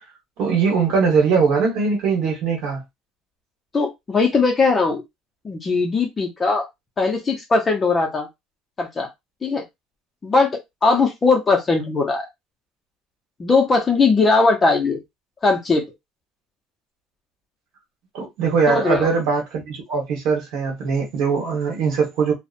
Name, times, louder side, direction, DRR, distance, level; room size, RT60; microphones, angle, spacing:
voice 1, 0.4-2.8 18.1-22.3, right 5 dB, 55° right, 1.2 m, -21 dB
voice 2, 3.7-5.0 5.4-6.7 7.0-8.3 8.8-9.1 9.4-9.6 10.2-10.5 10.8-12.2 13.4-15.0 15.4-15.8 18.7-19.1, left 3 dB, 15° left, 0.5 m, -19 dB
2.8 x 2.0 x 2.4 m
cardioid pair, 180°, 0 cm